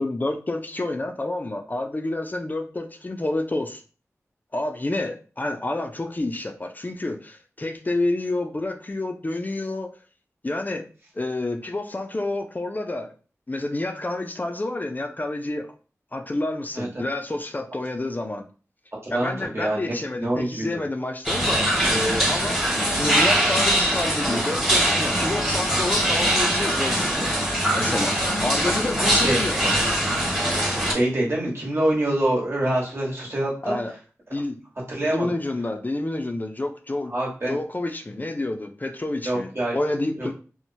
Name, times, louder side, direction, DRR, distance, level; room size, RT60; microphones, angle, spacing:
voice 1, 0.0-3.8 4.5-9.9 10.4-10.9 11.2-13.1 13.5-15.7 16.1-18.4 19.1-27.3 27.7-29.7 33.6-33.9 34.3-34.6 35.0-37.1 37.5-40.3, left 2 dB, 30° left, 5 dB, 0.3 m, -29 dB
voice 2, 19.0-20.7 29.0-29.4 30.6-33.8 34.9-35.3 37.1-37.6 39.2-39.8 40.2-40.3, right 1 dB, 45° right, -4 dB, 1.2 m, -25 dB
sound 1, 21.2-30.9, equal, 10° right, 1.2 m, -22 dB
2.9 x 2.0 x 2.6 m, 0.37 s
wide cardioid pair, 65°, 6 cm